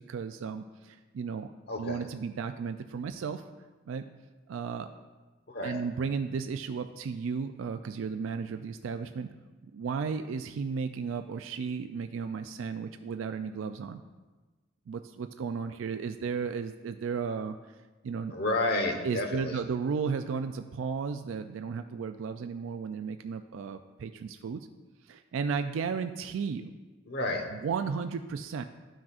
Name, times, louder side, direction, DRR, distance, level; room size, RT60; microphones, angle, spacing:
voice 1, 0.0-3.4 3.9-4.1 4.5-4.9 5.6-9.3 9.7-14.0 14.9-17.8 18.0-18.3 19.0-24.7 25.0-26.7 27.5-28.6, right 5 dB, 75° right, 8 dB, 0.3 m, -34 dB
voice 2, 18.3-19.6 27.1-27.5, left 2 dB, 55° left, 4 dB, 1.1 m, -30 dB
13.0 x 6.0 x 2.4 m, 1.3 s
head